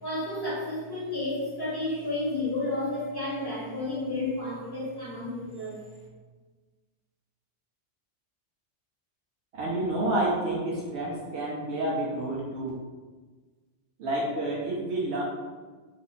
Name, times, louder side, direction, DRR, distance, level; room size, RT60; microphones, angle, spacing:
voice 1, 0.0-5.8, left 2 dB, 20° left, -8 dB, 0.9 m, -31 dB
voice 2, 9.5-12.7 14.0-15.2, right 1 dB, 75° right, -4 dB, 0.8 m, -29 dB
2.8 x 2.5 x 3.8 m, 1.4 s
omnidirectional pair, 1.2 m